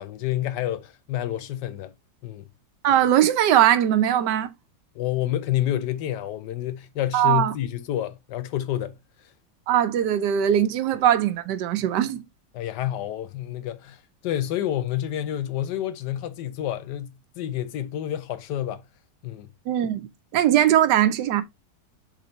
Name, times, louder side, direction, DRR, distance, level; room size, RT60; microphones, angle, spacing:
voice 1, 0.0-1.9 2.2-2.5 4.9-9.0 12.5-18.8 19.2-19.5, left 12 dB, 80° left, 1.3 m, -29 dB
voice 2, 2.8-4.5 7.1-7.5 9.7-12.2 19.7-20.1 20.3-21.4, right 11 dB, 85° right, 1.4 m, -20 dB
7.6 x 3.7 x 3.9 m
omnidirectional pair, 1.8 m